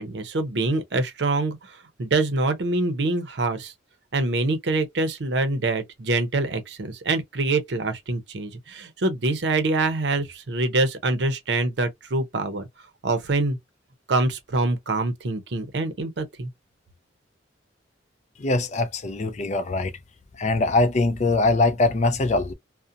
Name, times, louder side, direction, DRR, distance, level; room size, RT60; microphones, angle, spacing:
voice 1, 0.0-3.7 4.1-12.7 13.0-13.6 14.1-16.5, right 2 dB, 65° right, 0.6 m, -25 dB
voice 2, 18.4-19.9 20.4-22.5, left 2 dB, 40° left, 0.4 m, -22 dB
2.5 x 2.0 x 2.5 m
head